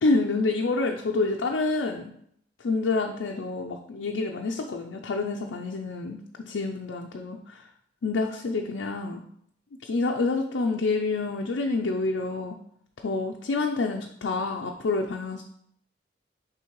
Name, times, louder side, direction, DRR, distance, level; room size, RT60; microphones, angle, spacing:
voice 1, 0.0-2.1 2.6-6.2 6.5-7.6 8.0-9.2 9.8-12.6 13.0-15.4, left 3 dB, 85° left, 2 dB, 0.5 m, -27 dB
9.2 x 3.3 x 3.1 m, 0.70 s
head